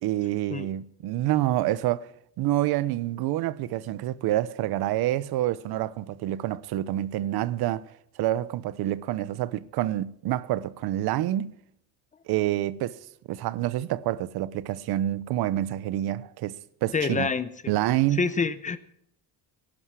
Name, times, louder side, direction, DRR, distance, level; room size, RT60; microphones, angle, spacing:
voice 1, 0.0-2.1 2.4-7.9 8.2-11.5 12.3-13.0 13.3-17.3 17.7-18.3, right 14 dB, 70° right, 0.9 m, -27 dB
voice 2, 16.9-17.7 18.2-18.8, left 5 dB, 20° left, 0.7 m, -27 dB
18.0 x 11.5 x 4.8 m
cardioid pair, 165°, 39 cm